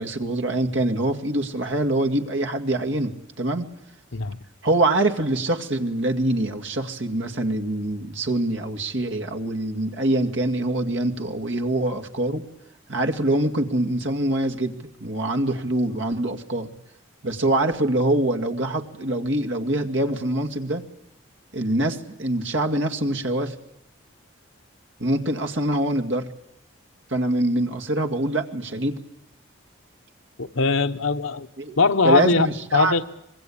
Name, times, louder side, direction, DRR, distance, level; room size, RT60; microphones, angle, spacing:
voice 1, 0.0-3.7 4.6-12.4 12.9-16.7 17.2-20.8 21.5-23.5 25.0-26.3 27.1-29.0 31.6-31.8 32.0-32.9, right 1 dB, 65° right, 2.3 m, -24 dB
voice 2, 30.4-31.5 31.8-32.5 32.7-33.0, left 4 dB, 80° left, 1.2 m, -21 dB
25.5 x 21.5 x 8.7 m
head